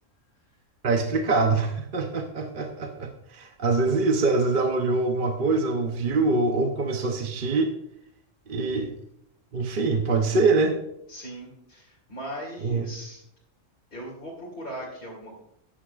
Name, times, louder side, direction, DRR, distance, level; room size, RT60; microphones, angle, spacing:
voice 1, 0.8-7.7 8.5-8.9 9.5-10.7 12.6-12.8, right 3 dB, 45° right, 4 dB, 0.9 m, -24 dB
voice 2, 11.1-13.2 13.9-15.4, equal, 40° left, -5 dB, 2.6 m, -39 dB
14.0 x 9.9 x 2.4 m, 0.78 s
omnidirectional pair, 1.3 m